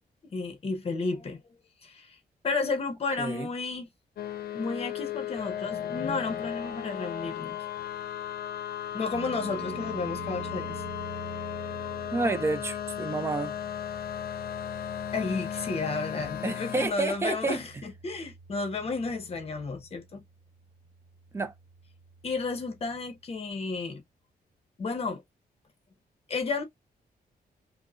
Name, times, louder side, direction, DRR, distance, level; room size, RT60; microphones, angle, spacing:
voice 1, 0.3-1.4 1.8-2.2 2.4-3.9 4.5-7.6 8.9-10.7 15.1-20.2 22.2-24.0 24.8-25.2 26.3-26.6, left 4 dB, 40° left, 0.8 m, -32 dB
voice 2, 3.2-3.5 12.1-13.5 16.4-17.6 21.3-21.5, right 3 dB, 15° right, 0.4 m, -29 dB
sound 1, 4.2-16.9, left 10 dB, 70° left, 0.6 m, -36 dB
sound 2, 9.1-23.2, right 4 dB, 35° right, 1.0 m, -47 dB
5.1 x 2.1 x 2.4 m
wide cardioid pair, 175°, 16 cm